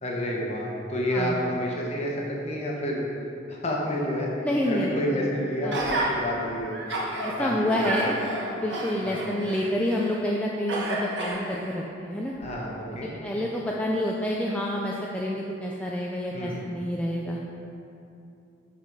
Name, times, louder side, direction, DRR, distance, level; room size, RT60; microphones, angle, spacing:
voice 1, 0.0-3.1 3.5-4.3 4.7-6.7 7.4-8.0 9.0-9.2 12.4-13.1 16.3-16.6, equal, 35° left, -3 dB, 1.1 m, -29 dB
voice 2, 4.4-4.9 5.6-5.8 7.2-8.2 8.6-12.4 13.2-17.4, left 1 dB, 5° left, -3 dB, 0.3 m, -28 dB
Gasp, 5.7-6.1 6.6-7.3 7.7-10.2 10.7-11.8 12.4-12.5, right 2 dB, 60° right, 1.2 m, -31 dB
7.8 x 4.2 x 5.4 m, 2.8 s
head